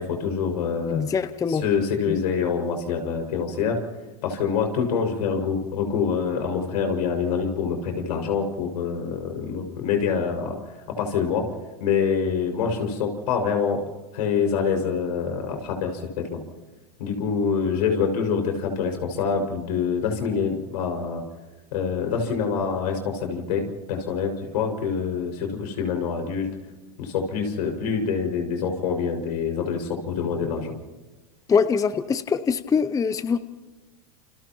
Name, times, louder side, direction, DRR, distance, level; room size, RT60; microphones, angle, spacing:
voice 1, 0.0-1.0 1.5-3.8 4.2-11.5 11.8-13.8 14.1-16.4 17.0-21.2 21.7-26.5 27.0-30.7, left 6 dB, 80° left, 4 dB, 6.1 m, -26 dB
voice 2, 0.9-1.6 2.1-2.2 31.5-33.4, left 6 dB, 15° left, 13 dB, 0.6 m, -23 dB
29.5 x 29.0 x 3.1 m, 1.2 s
supercardioid pair, 125°, 20 cm